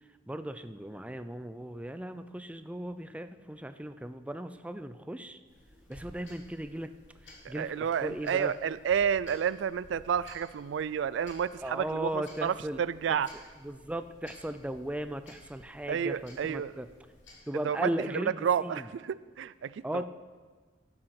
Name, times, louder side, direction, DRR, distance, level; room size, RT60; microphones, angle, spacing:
voice 1, 0.3-5.4 5.9-6.9 7.2-7.7 8.0-8.5 11.6-12.8 13.1-13.2 13.6-16.9 17.5-18.8 19.8-20.0, right 1 dB, 5° right, 10 dB, 0.5 m, -37 dB
sound 1, 5.5-17.4, left 1 dB, 80° left, 3.3 m, -55 dB
voice 2, 7.4-13.3 15.9-16.7 17.6-20.0, right 8 dB, 75° right, 17 dB, 0.3 m, -30 dB
14.5 x 7.8 x 5.8 m, 1.4 s
head